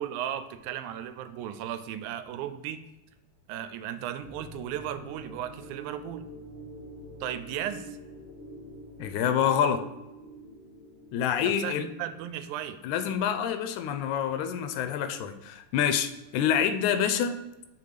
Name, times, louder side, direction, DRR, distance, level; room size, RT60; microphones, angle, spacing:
voice 1, 0.0-2.8 3.5-6.2 7.2-8.0 11.4-12.8, right 10 dB, 90° right, 11 dB, 2.0 m, -35 dB
sound 1, 4.2-13.3, right 1 dB, 25° right, 1.6 m, -47 dB
voice 2, 9.0-9.8 11.1-11.9 12.8-17.4, left 8 dB, 90° left, 9 dB, 2.0 m, -27 dB
6.0 x 4.2 x 4.8 m, 1.0 s
omnidirectional pair, 3.4 m